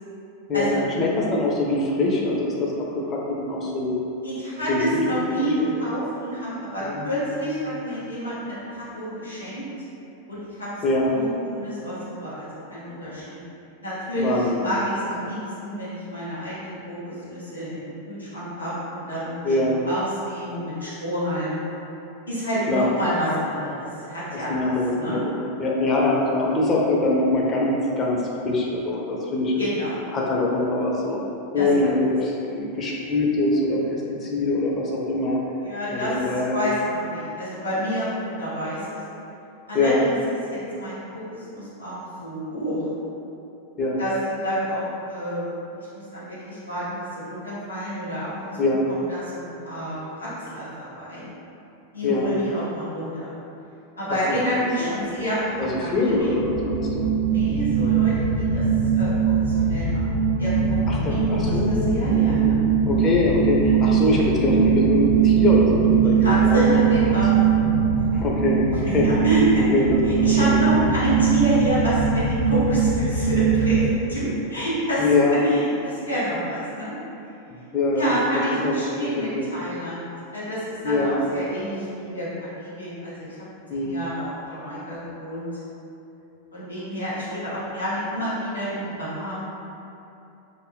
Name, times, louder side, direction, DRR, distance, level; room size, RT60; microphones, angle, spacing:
voice 1, 0.5-4.0 4.7-5.2 6.8-7.8 10.8-11.1 14.2-14.6 19.4-19.8 22.7-22.9 24.3-28.2 28.4-29.6 30.1-31.2 31.5-35.4 35.9-36.7 39.7-40.0 43.8-44.0 48.6-48.8 52.0-52.3 54.3-54.4 54.8-54.9 55.6-57.1 60.9-62.5 62.9-67.2 68.1-69.1 69.6-70.8 74.2-74.3 75.0-75.4 77.5-78.1 78.6-78.7 79.1-79.7 80.8-81.2 83.7-84.0, left 2 dB, 30° left, -3 dB, 0.5 m, -23 dB
voice 2, 4.2-9.6 10.3-10.7 11.1-13.4 13.8-21.6 22.3-25.2 29.6-30.0 31.5-31.7 35.6-36.1 36.5-39.0 39.7-40.1 40.5-42.8 44.0-44.8 45.1-45.5 45.8-51.2 51.9-53.3 54.0-56.3 57.2-58.6 58.9-59.1 59.4-60.0 60.4-62.6 66.2-67.6 67.9-68.2 68.8-69.6 70.0-76.9 78.0-83.5 83.7-85.5 86.5-89.4, equal, 80° left, -10 dB, 0.9 m, -28 dB
sound 1, 55.7-73.9, right 6 dB, 65° right, 0.6 m, -21 dB
2.5 x 2.2 x 3.3 m, 2.8 s
figure-of-eight pair, 90°, 0 cm